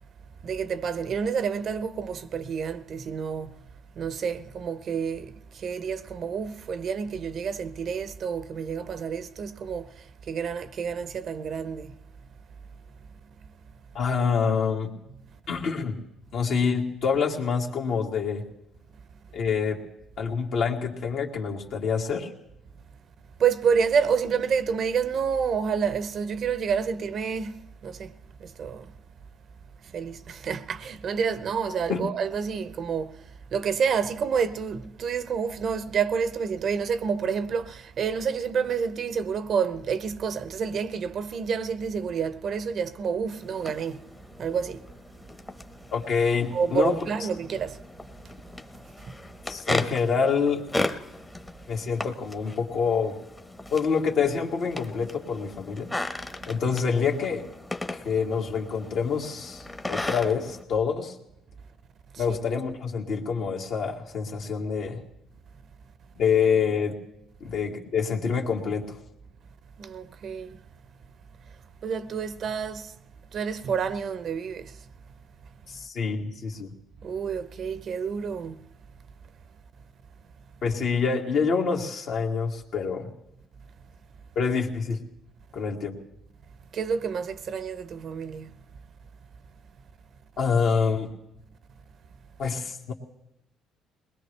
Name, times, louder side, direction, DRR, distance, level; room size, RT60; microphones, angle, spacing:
voice 1, 0.4-3.6 4.0-11.9 23.4-28.1 28.4-28.9 29.8-33.2 33.5-44.1 44.4-44.8 46.5-47.8 49.1-49.2 62.1-62.4 69.8-70.6 71.8-72.9 73.3-74.8 77.0-78.6 86.7-88.5, right 6 dB, 55° right, 0.7 m, -29 dB
voice 2, 13.9-14.9 15.5-16.0 16.3-18.4 19.3-19.8 20.2-22.3 31.9-32.1 45.9-46.9 49.5-50.6 51.7-53.2 53.7-55.9 56.5-57.5 57.9-61.2 62.2-65.0 66.2-67.0 67.4-69.0 75.7-76.7 80.6-83.1 84.4-85.0 85.5-85.9 90.4-91.1 92.4-92.9, left 5 dB, 65° left, 2.0 m, -26 dB
sound 1, 43.3-60.6, left 2 dB, 15° left, 1.0 m, -37 dB
22.0 x 20.0 x 3.3 m
cardioid pair, 95°, 0 cm